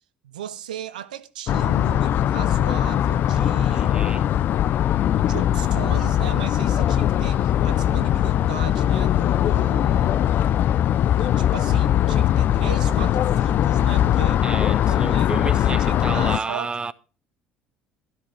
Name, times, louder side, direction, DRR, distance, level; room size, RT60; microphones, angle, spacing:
voice 1, 0.2-4.0 5.2-10.3 11.1-14.4 14.8-15.3 15.7-16.7, right 10 dB, 85° right, 0.5 m, -37 dB
sound 1, 1.5-16.4, left 11 dB, 50° left, 0.4 m, -20 dB
voice 2, 3.7-4.3 14.4-16.9, right 4 dB, 20° right, 0.6 m, -31 dB
12.5 x 11.5 x 3.3 m
hypercardioid pair, 65°, 4 cm